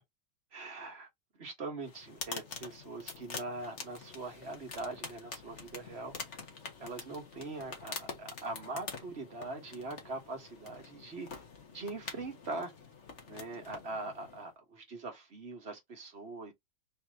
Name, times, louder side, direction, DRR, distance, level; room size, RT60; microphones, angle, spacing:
voice 1, 0.5-1.1 1.3-6.4 6.8-11.3 11.7-12.7 13.3-16.5, right 3 dB, 35° right, 1.5 m, -42 dB
sound 1, 1.8-14.5, left 4 dB, 40° left, 1.4 m, -46 dB
4.3 x 3.1 x 3.6 m
omnidirectional pair, 2.2 m